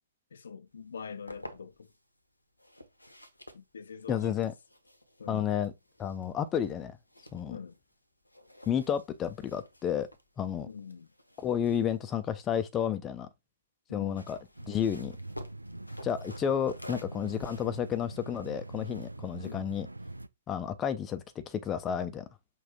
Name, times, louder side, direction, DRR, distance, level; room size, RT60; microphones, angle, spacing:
voice 1, 0.3-1.9 3.5-4.5 5.2-5.5 7.5-7.8 10.7-11.1 13.9-14.3 19.4-19.7, left 6 dB, 60° left, 0.6 m, -44 dB
sound 1, 0.9-2.0 2.6-8.0 8.2-12.9 13.9-19.5, left 1 dB, 85° left, 0.9 m, -51 dB
voice 2, 4.1-4.5 5.3-5.7 6.0-7.0 7.3-7.6 8.7-10.1 10.4-10.7 11.4-13.3 13.9-14.4 14.7-15.1 16.0-19.9 20.5-22.3, left 9 dB, 20° left, 0.4 m, -31 dB
sound 2, 14.6-20.3, right 2 dB, 85° right, 0.4 m, -43 dB
5.6 x 2.4 x 3.5 m
figure-of-eight pair, 120°, 0 cm